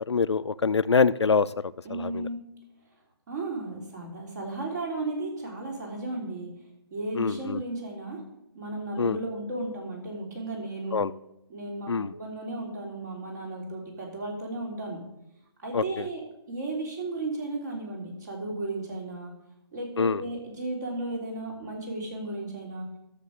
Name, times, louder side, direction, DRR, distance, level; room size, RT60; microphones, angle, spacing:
voice 1, 0.1-1.5 1.9-2.3 7.1-7.6 9.0-9.2 10.9-11.1 11.9-12.1 15.7-16.1 20.0-20.2, left 5 dB, 90° left, 14 dB, 0.5 m, -25 dB
voice 2, 1.8-2.4 3.3-6.5 6.9-8.2 8.6-11.0 11.5-15.0 15.6-16.2 16.5-19.3 19.7-22.9, right 2 dB, 40° right, 1 dB, 3.5 m, -34 dB
12.5 x 6.9 x 6.5 m, 0.87 s
figure-of-eight pair, 155°, 14 cm